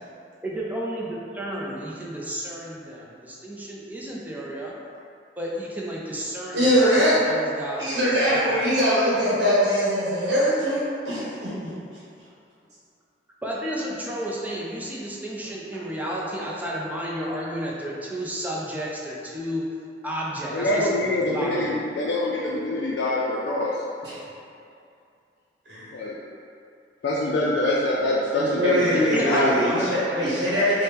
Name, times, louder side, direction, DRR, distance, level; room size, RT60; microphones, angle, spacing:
voice 1, 0.4-4.7 5.4-8.6 13.4-19.7 20.0-21.7 29.1-30.7, equal, 10° right, -4 dB, 0.4 m, -32 dB
voice 2, 6.5-7.2 7.8-11.7 24.0-24.2 25.7-25.8 28.4-30.8, equal, 70° right, -9 dB, 0.9 m, -22 dB
voice 3, 20.5-23.7 25.9-26.1 27.0-29.6, left 1 dB, 70° left, -5 dB, 0.4 m, -24 dB
3.3 x 2.1 x 4.3 m, 2.5 s
head